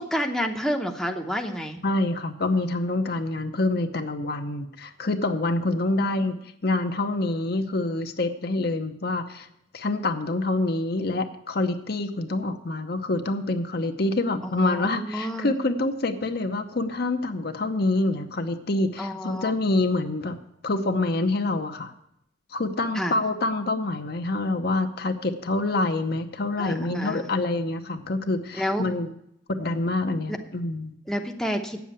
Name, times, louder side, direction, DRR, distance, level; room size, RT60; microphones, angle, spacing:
voice 1, 0.0-1.8 14.4-15.5 19.0-19.5 22.9-23.1 26.6-27.3 28.5-28.9 30.3-30.4 31.1-31.8, equal, ahead, 2 dB, 0.8 m, -29 dB
voice 2, 1.8-6.4 6.6-9.5 9.7-20.4 20.6-21.9 22.5-29.1 29.5-31.0, left 2 dB, 60° left, 6 dB, 0.8 m, -26 dB
8.5 x 7.1 x 8.7 m, 0.77 s
head